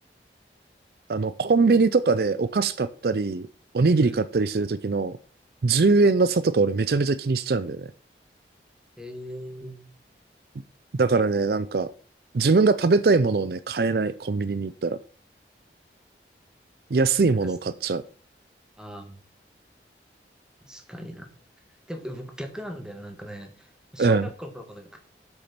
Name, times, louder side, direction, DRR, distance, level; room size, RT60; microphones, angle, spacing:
voice 1, 1.1-3.5 3.7-5.2 5.6-7.9 11.0-11.9 12.3-15.0 16.9-18.0 24.0-24.3, right 4 dB, 60° right, 0.4 m, -22 dB
voice 2, 9.0-9.8 17.4-17.6 18.8-19.2 20.6-21.3 21.9-25.0, equal, 5° right, 1.6 m, -39 dB
8.2 x 6.3 x 6.0 m
head